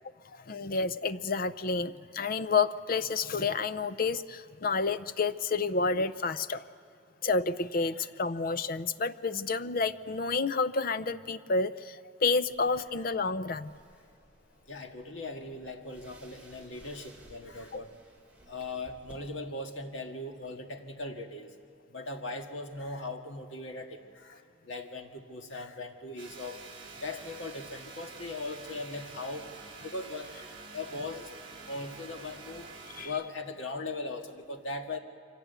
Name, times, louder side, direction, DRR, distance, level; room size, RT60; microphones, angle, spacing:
voice 1, 0.3-6.6 7.2-13.7 17.7-17.8 33.0-33.1, left 4 dB, 45° left, 14 dB, 0.6 m, -30 dB
sound 1, 12.5-19.1, right 1 dB, 5° right, 3.2 m, -58 dB
voice 2, 14.7-17.9 18.5-21.5 21.9-26.6 27.0-29.5 29.8-31.3 31.7-32.7 33.0-35.0, left 2 dB, 75° left, 4 dB, 1.8 m, -39 dB
sound 2, 26.2-33.1, right 4 dB, 30° right, 4.1 m, -47 dB
24.5 x 17.0 x 8.1 m, 2.4 s
head